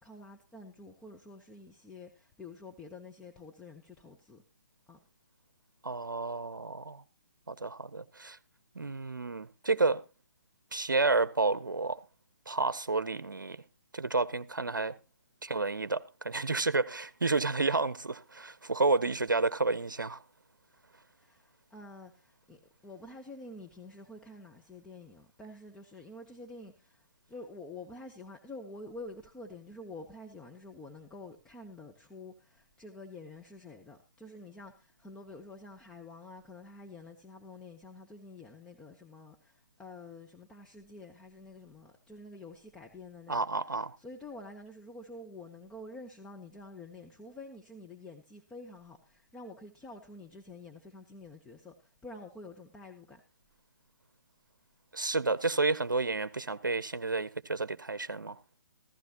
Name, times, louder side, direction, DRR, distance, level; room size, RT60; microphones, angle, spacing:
voice 1, 0.0-4.4 4.9-5.0 19.1-19.2 20.7-53.2, left 2 dB, 5° left, 0.8 m, -48 dB
voice 2, 5.8-7.0 7.5-8.4 8.8-10.0 10.7-12.0 12.5-13.6 13.9-14.9 15.4-20.2 43.3-43.9 54.9-58.4, right 3 dB, 85° right, 0.6 m, -30 dB
15.0 x 15.0 x 2.8 m
figure-of-eight pair, 140°, 10 cm